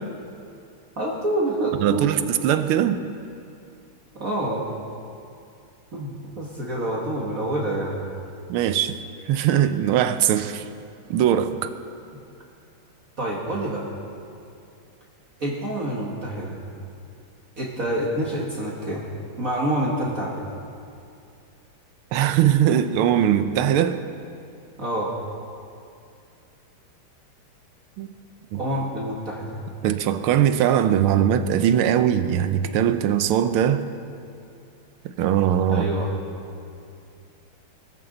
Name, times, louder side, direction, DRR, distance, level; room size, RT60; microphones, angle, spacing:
voice 1, 1.0-2.1 4.2-4.6 5.9-8.0 13.2-13.8 15.4-16.6 17.6-19.0 19.4-20.5 24.8-25.1 28.5-29.6 35.7-36.1, right 1 dB, 40° right, 1.9 m, -27 dB
voice 2, 1.8-3.0 8.5-9.0 9.3-10.6 11.1-11.7 22.1-24.0 28.0-28.1 28.5-28.6 29.8-33.8 35.2-35.9, right 10 dB, 80° right, 1.6 m, -20 dB
23.0 x 14.5 x 3.9 m
omnidirectional pair, 2.4 m